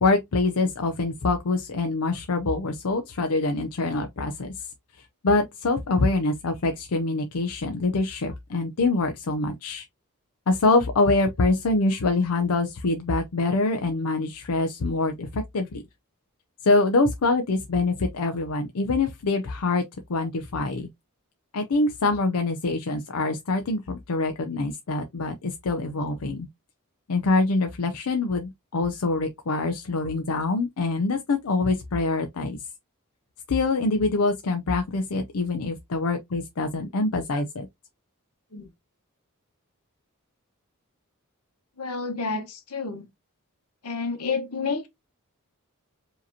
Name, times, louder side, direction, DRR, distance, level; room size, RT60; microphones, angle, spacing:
voice 1, 0.0-4.5 5.2-9.8 10.5-15.8 16.6-19.8 20.1-20.9 21.5-26.5 27.1-32.6 33.5-37.7, left 3 dB, 70° left, 0.6 m, -25 dB
voice 2, 41.8-43.1 43.8-44.9, left 4 dB, 85° left, 1.2 m, -30 dB
4.9 x 2.9 x 2.7 m
head